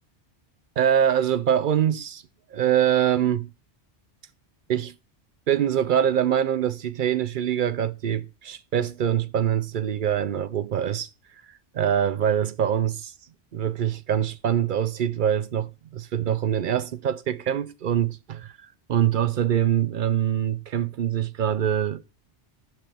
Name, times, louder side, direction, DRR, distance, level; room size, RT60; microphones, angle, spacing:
voice 1, 0.8-2.2 2.5-3.5 4.7-4.9 5.5-11.1 11.4-13.1 13.5-22.1, right 9 dB, 60° right, 0.6 m, -24 dB
13.0 x 4.5 x 3.4 m
omnidirectional pair, 1.2 m